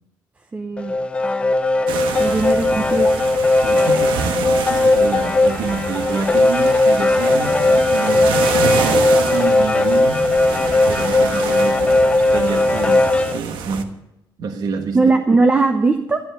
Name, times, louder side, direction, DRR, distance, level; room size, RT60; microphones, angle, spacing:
voice 1, 0.5-1.0 2.2-3.1 14.9-16.2, right 3 dB, 20° right, 5 dB, 0.7 m, -18 dB
sound 1, 0.8-13.4, left 2 dB, 15° left, 0.4 m, -17 dB
sound 2, 1.9-13.8, right 6 dB, 85° right, 1.3 m, -27 dB
voice 2, 3.5-8.3 8.8-10.2 10.9-13.9 14.4-15.0, right 5 dB, 55° right, 6 dB, 1.3 m, -28 dB
12.5 x 9.8 x 6.6 m, 0.89 s
cardioid pair, 175°, 8 cm